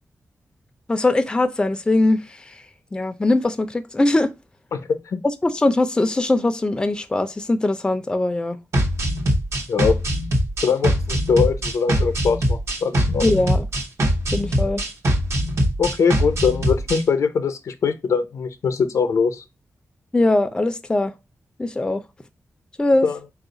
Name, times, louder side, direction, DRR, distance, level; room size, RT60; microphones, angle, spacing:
voice 1, 0.9-2.6 2.9-4.3 5.4-8.6 13.2-13.7 14.3-14.8 20.1-21.1 21.6-22.0 22.8-23.1, left 2 dB, 15° left, 0.4 m, -21 dB
voice 2, 4.7-5.2 9.7-10.0 10.6-13.4 15.8-19.4 23.0-23.2, left 5 dB, 85° left, 0.6 m, -22 dB
sound 1, 8.7-17.0, equal, 60° right, 1.0 m, -22 dB
4.2 x 2.4 x 3.8 m
wide cardioid pair, 115°, 5 cm